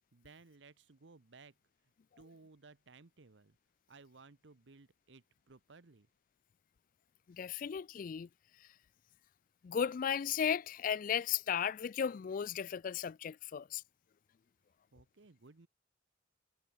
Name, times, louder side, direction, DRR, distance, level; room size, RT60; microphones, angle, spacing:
voice 1, 0.1-1.6 2.2-3.6 3.9-6.1 14.9-15.7, right 4 dB, 65° right, 0.9 m, -59 dB
voice 2, 7.3-8.3 8.6-8.7 9.6-13.8, left 8 dB, 45° left, 0.3 m, -35 dB
head